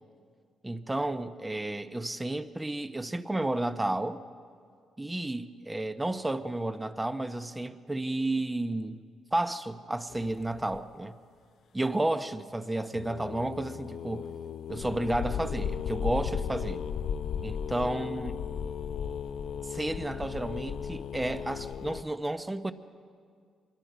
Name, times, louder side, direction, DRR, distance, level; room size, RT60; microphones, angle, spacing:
voice 1, 0.6-4.2 5.0-9.0 9.3-11.2 11.7-14.3 14.7-16.8 17.4-18.4 19.7-22.7, right 2 dB, 15° right, 0.9 m, -32 dB
sound 1, 10.1-10.8 12.9-22.0, left 7 dB, 65° left, 0.5 m, -35 dB
24.5 x 21.5 x 5.0 m
cardioid pair, 90°, 0 cm